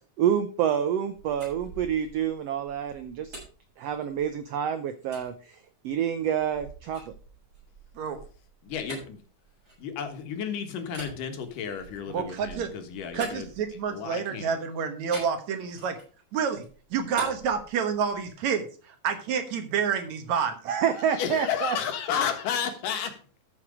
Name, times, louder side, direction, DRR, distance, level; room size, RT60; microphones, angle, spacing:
voice 1, 0.2-3.4 3.8-5.6 5.8-7.1 20.7-21.8, right 9 dB, 80° right, 9 dB, 1.4 m, -28 dB
sound 1, 1.1-4.5 5.1-5.3 5.9-10.3 10.9-14.1 15.1-16.2 16.5-18.3, right 2 dB, 35° right, 7.8 m, -45 dB
voice 2, 8.6-9.2 9.8-13.5 13.9-14.5 21.2-23.2, left 7 dB, 75° left, 7 dB, 3.0 m, -32 dB
voice 3, 12.1-12.7 13.1-16.0 16.3-16.6 16.9-20.6, right 6 dB, 65° right, 7 dB, 2.3 m, -29 dB
13.5 x 6.4 x 4.9 m, 0.39 s
omnidirectional pair, 3.8 m